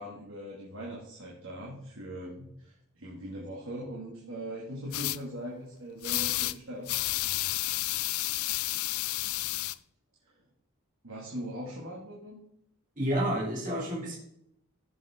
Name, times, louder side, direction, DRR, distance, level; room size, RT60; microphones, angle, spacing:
voice 1, 0.0-6.9 11.0-12.4, equal, 70° right, -4 dB, 2.3 m, -40 dB
sound 1, 4.9-5.2 6.0-6.6 6.9-9.7, left 17 dB, 80° left, 0.4 m, -31 dB
voice 2, 13.0-14.2, right 1 dB, 35° right, -4 dB, 3.1 m, -29 dB
15.0 x 7.3 x 3.8 m, 0.76 s
head